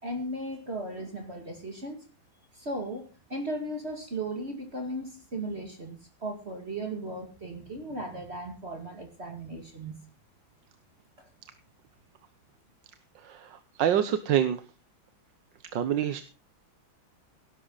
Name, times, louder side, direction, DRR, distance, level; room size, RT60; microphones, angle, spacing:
voice 1, 0.0-2.0 2.5-3.0 3.3-9.9, right 1 dB, 30° right, 4 dB, 2.5 m, -36 dB
voice 2, 13.2-14.6 15.7-16.2, right 10 dB, 70° right, 11 dB, 1.6 m, -26 dB
18.5 x 11.5 x 4.0 m, 0.33 s
omnidirectional pair, 2.1 m